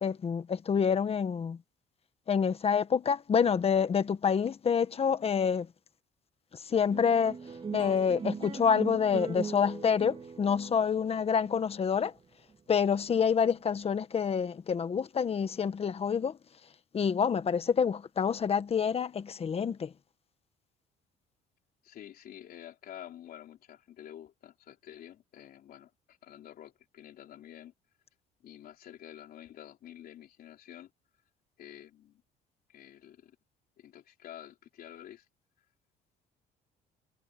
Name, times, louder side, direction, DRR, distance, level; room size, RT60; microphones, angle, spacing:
voice 1, 0.0-1.6 2.3-5.7 6.6-7.4 7.7-12.1 12.7-16.4 16.9-19.9, left 6 dB, 35° left, 1.5 m, -27 dB
sound 1, 6.9-13.6, right 5 dB, 30° right, 3.3 m, -40 dB
voice 2, 21.8-27.7 28.4-30.9 31.6-32.2 32.7-33.4 33.8-35.3, left 11 dB, 60° left, 4.0 m, -49 dB
cardioid pair, 110°, 17 cm